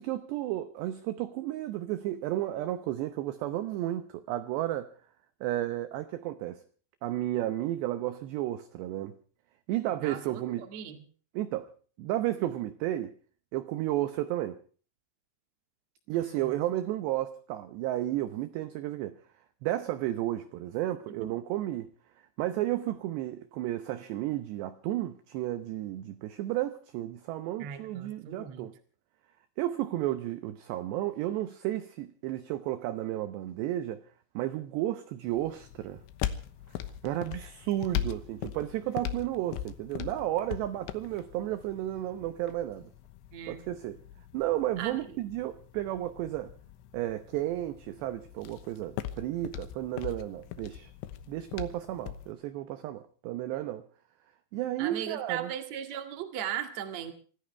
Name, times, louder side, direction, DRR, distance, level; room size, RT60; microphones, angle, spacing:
voice 1, 0.0-4.9 5.4-6.6 7.0-9.2 9.7-10.7 11.3-11.7 12.0-13.1 13.5-14.6 16.1-19.2 19.6-21.9 22.4-28.7 29.6-34.0 34.3-36.0 37.0-42.9 43.5-44.0 44.3-46.5 46.9-50.9 51.3-53.8 54.5-55.5, right 14 dB, 80° right, 2.5 m, -32 dB
voice 2, 10.0-11.0 16.1-16.5 21.1-21.2 27.6-28.7 43.3-43.6 44.8-45.0 54.8-57.1, right 9 dB, 50° right, 2.1 m, -38 dB
sound 1, 35.3-52.3, left 11 dB, 75° left, 3.3 m, -40 dB
27.0 x 15.5 x 3.4 m
omnidirectional pair, 5.9 m